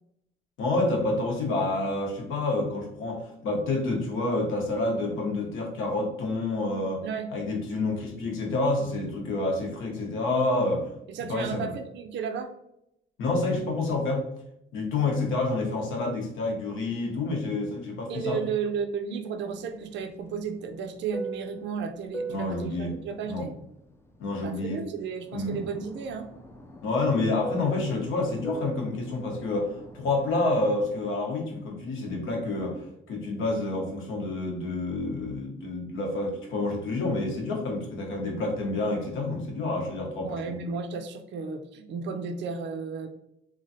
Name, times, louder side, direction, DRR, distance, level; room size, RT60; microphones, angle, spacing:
voice 1, 0.6-7.0 7.3-10.9 11.3-11.7 13.2-14.3 14.7-18.4 22.3-22.9 23.2-23.4 24.2-24.8 25.3-25.6 26.8-40.6, left 2 dB, 85° left, 0 dB, 0.9 m, -28 dB
voice 2, 11.1-12.5 18.1-23.5 24.4-26.3 40.2-43.1, right 6 dB, 65° right, 6 dB, 0.4 m, -33 dB
Fixed-wing aircraft airplane, 19.5-24.9 25.2-31.1, right 2 dB, 10° left, 0.3 m, -41 dB
3.1 x 2.3 x 2.6 m, 0.78 s
cardioid pair, 90°, 20 cm